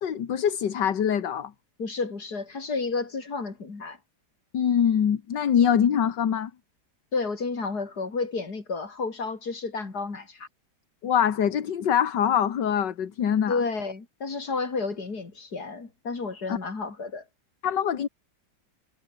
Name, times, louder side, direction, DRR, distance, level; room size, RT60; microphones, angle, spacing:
voice 1, 0.0-1.5 4.5-6.5 11.0-13.6 16.5-16.6 17.6-18.1, left 8 dB, 75° left, 2.2 m, -24 dB
voice 2, 1.8-4.0 7.1-10.5 13.5-17.2, left 4 dB, 60° left, 4.1 m, -31 dB
omnidirectional pair, 1.9 m